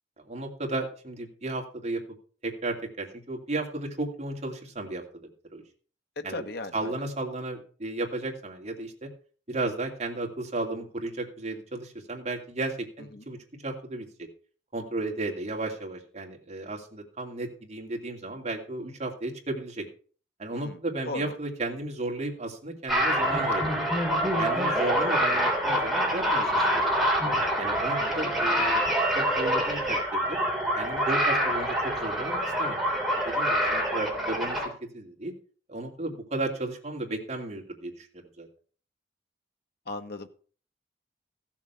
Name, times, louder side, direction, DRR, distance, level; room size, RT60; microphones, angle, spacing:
voice 1, 0.2-2.0 2.4-5.2 5.5-5.6 6.2-6.5 6.7-9.1 9.5-13.4 13.6-14.3 14.7-19.8 20.4-23.9 24.4-26.9 27.6-28.8 29.1-30.4 30.7-32.8 33.1-35.3 35.7-38.5, right 2 dB, 40° right, 1 dB, 2.7 m, -34 dB
voice 2, 6.3-6.9 13.1-13.2 20.5-20.8 21.1-21.3 28.0-28.2 39.9-40.3, left 2 dB, 65° left, 7 dB, 1.3 m, -37 dB
sound 1, 22.9-34.7, equal, ahead, 3.3 m, -26 dB
15.0 x 7.3 x 5.8 m, 0.42 s
head